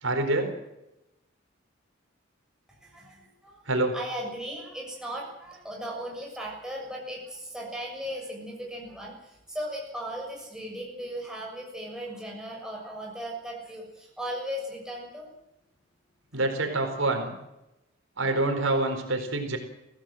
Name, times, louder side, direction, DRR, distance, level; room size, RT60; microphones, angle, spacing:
voice 1, 0.0-0.5 3.7-3.9 16.3-17.4 18.2-19.6, right 2 dB, 75° right, 5 dB, 4.4 m, -26 dB
voice 2, 2.8-3.6 3.9-15.3, equal, 5° right, -2 dB, 6.7 m, -37 dB
24.0 x 16.5 x 7.8 m, 0.91 s
head